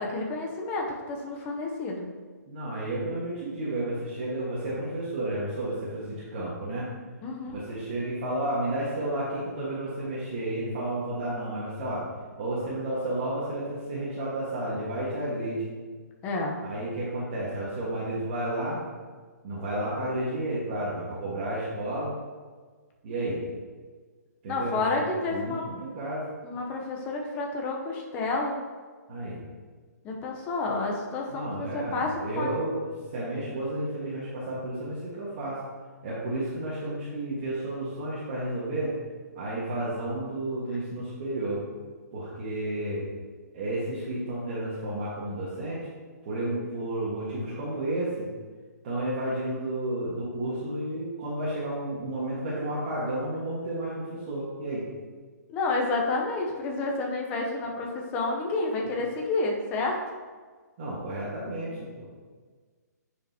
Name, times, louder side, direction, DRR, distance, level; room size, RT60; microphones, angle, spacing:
voice 1, 0.0-2.1 7.2-7.6 16.2-16.6 24.5-25.6 26.4-28.6 30.0-32.5 55.5-60.0, left 3 dB, 15° left, 0 dB, 0.8 m, -30 dB
voice 2, 2.5-6.9 7.5-12.0 12.4-15.6 16.6-18.8 19.4-22.1 23.0-23.4 24.4-26.2 29.1-29.4 31.3-35.6 36.0-38.9 39.3-41.6 42.1-43.1 43.5-45.8 46.2-48.3 48.8-54.8 60.8-62.1, right 1 dB, 35° right, -8 dB, 1.6 m, -32 dB
9.2 x 5.1 x 2.9 m, 1.5 s
hypercardioid pair, 165°, 9 cm